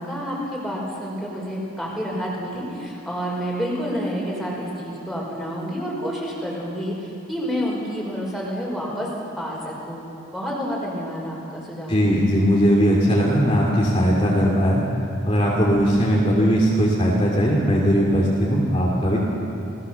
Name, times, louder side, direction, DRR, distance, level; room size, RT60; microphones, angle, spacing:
voice 1, 0.0-9.1 9.4-10.1 10.3-12.3, equal, ahead, -4 dB, 5.2 m, -29 dB
voice 2, 11.9-14.8 15.3-19.2, equal, 30° left, -4 dB, 2.7 m, -19 dB
29.0 x 18.0 x 7.0 m, 2.7 s
head